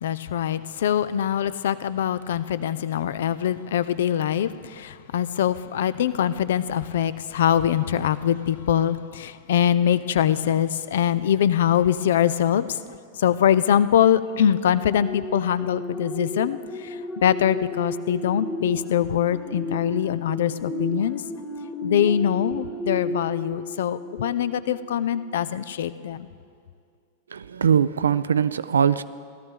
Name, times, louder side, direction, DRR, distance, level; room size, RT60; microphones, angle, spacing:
voice 1, 0.0-12.8 13.2-21.2 21.8-26.3, left 9 dB, 60° left, 0.4 m, -23 dB
sound 1, 14.8-24.7 25.1-25.4, equal, 15° left, 1.4 m, -33 dB
voice 2, 27.3-29.0, right 7 dB, 70° right, 0.3 m, -21 dB
17.0 x 13.0 x 3.7 m
figure-of-eight pair, 90°, 0 cm